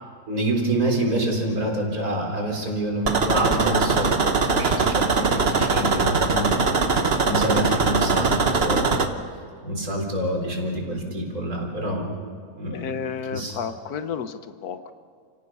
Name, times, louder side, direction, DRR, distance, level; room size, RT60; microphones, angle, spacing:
voice 1, 0.3-6.7 7.2-9.0 9.6-12.2 12.6-12.9 13.3-13.6, right 1 dB, 65° right, 0 dB, 4.4 m, -27 dB
sound 1, 3.1-9.1, right 4 dB, 40° right, 1.3 m, -21 dB
voice 2, 12.6-14.9, left 7 dB, 70° left, 10 dB, 1.5 m, -32 dB
29.5 x 17.5 x 5.6 m, 2.2 s
omnidirectional pair, 1.7 m